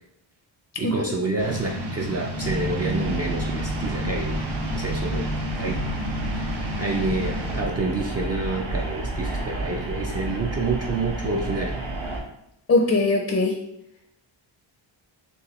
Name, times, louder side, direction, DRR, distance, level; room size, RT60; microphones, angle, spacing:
voice 1, 0.8-4.4 4.7-5.3 5.5-5.9 6.3-11.8, right 3 dB, 35° right, 0 dB, 0.4 m, -28 dB
sound 1, 1.4-7.6, equal, 55° right, 1.0 m, -31 dB
sound 2, 2.4-12.2, right 2 dB, 85° right, 1.1 m, -31 dB
voice 2, 12.7-13.6, left 2 dB, 30° left, 3 dB, 0.4 m, -20 dB
6.7 x 2.3 x 3.0 m, 0.80 s
wide cardioid pair, 140°, 47 cm